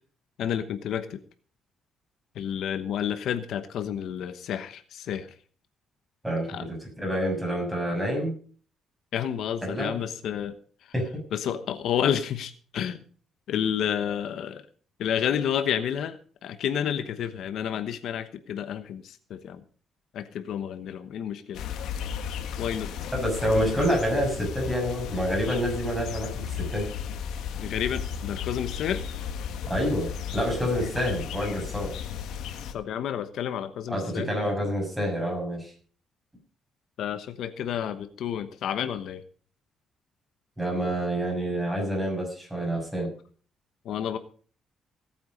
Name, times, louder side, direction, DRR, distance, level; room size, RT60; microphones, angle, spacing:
voice 1, 0.4-1.2 2.3-5.3 6.5-6.7 9.1-10.5 11.3-13.0 13.5-14.6 15.0-19.6 20.1-21.6 22.6-22.9 27.6-29.0 32.7-34.7 37.0-39.2 43.8-44.2, left 9 dB, 65° left, 10 dB, 1.0 m, -30 dB
voice 2, 6.2-8.3 9.6-10.0 10.9-11.1 23.1-26.9 29.7-31.9 33.9-35.7 40.6-43.1, equal, 10° right, 0 dB, 6.7 m, -28 dB
sound 1, 21.5-32.7, left 8 dB, 85° left, 1.5 m, -34 dB
17.5 x 8.9 x 5.3 m, 0.43 s
cardioid pair, 155°, 0 cm